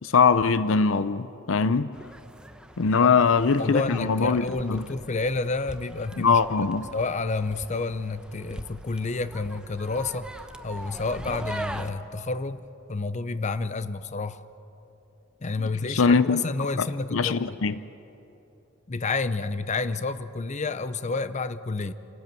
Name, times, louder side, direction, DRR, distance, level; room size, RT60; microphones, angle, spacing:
voice 1, 0.0-1.9 2.8-4.9 6.2-6.9 15.9-16.4 16.8-16.9 17.1-17.8, left 5 dB, 75° left, 0.6 m, -22 dB
sound 1, 1.9-11.9, right 1 dB, 5° right, 0.8 m, -41 dB
voice 2, 3.6-6.7 6.9-10.3 10.6-12.6 12.9-14.4 15.4-17.6 18.9-21.9, left 3 dB, 35° left, 0.7 m, -29 dB
28.5 x 13.5 x 9.0 m
head